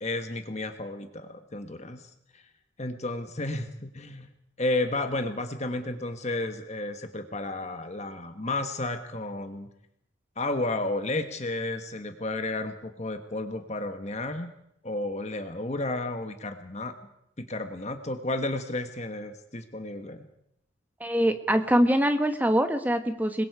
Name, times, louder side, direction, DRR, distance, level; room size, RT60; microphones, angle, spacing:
voice 1, 0.0-2.0 2.3-2.4 2.8-4.3 4.6-9.7 10.4-14.5 14.8-16.9 17.4-20.2, left 2 dB, 35° left, 7 dB, 1.3 m, -32 dB
voice 2, 21.0-23.4, equal, 10° right, 7 dB, 1.3 m, -23 dB
26.5 x 21.5 x 4.8 m, 0.76 s
head